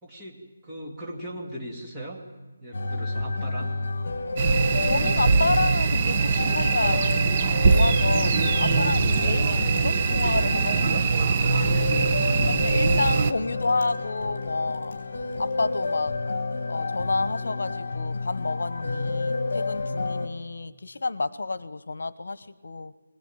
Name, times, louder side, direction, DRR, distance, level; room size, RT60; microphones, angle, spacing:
voice 1, 0.0-2.2 2.6-3.8 11.4-12.6, right 1 dB, 10° right, -4 dB, 2.4 m, -38 dB
sound 1, 2.7-20.3, left 3 dB, 55° left, 2.1 m, -30 dB
sound 2, 4.4-13.3, right 5 dB, 25° right, 0.8 m, -22 dB
voice 2, 4.8-7.0 7.7-11.0 11.6-11.7 12.6-14.9 15.4-16.1 16.7-22.9, left 3 dB, 75° left, 17 dB, 1.0 m, -29 dB
Mechanisms, 5.2-15.7, left 2 dB, 30° left, 7.1 m, -43 dB
22.5 x 20.0 x 9.1 m, 1.3 s
hypercardioid pair, 175°, 0 cm